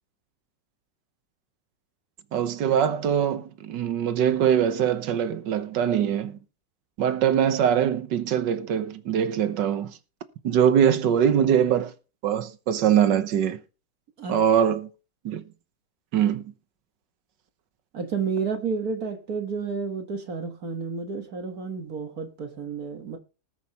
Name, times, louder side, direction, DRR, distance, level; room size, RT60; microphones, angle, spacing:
voice 1, 2.3-6.4 7.0-10.0 10.4-11.9 12.2-13.6 14.3-14.9 15.2-15.4 16.1-16.4, right 9 dB, 70° right, 1.7 m, -22 dB
voice 2, 17.9-23.2, right 5 dB, 55° right, 1.8 m, -31 dB
20.0 x 8.2 x 3.0 m
omnidirectional pair, 2.0 m